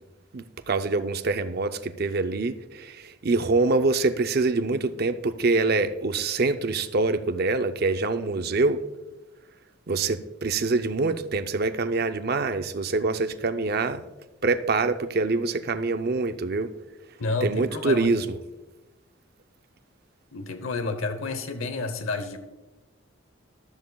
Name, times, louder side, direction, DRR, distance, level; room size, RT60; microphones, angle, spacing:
voice 1, 0.3-8.8 9.9-14.0 14.4-16.7 17.4-18.2, right 3 dB, 50° right, 0.5 m, -25 dB
voice 2, 17.2-18.1 20.3-22.4, left 3 dB, 80° left, 0.9 m, -30 dB
14.0 x 12.5 x 2.3 m
head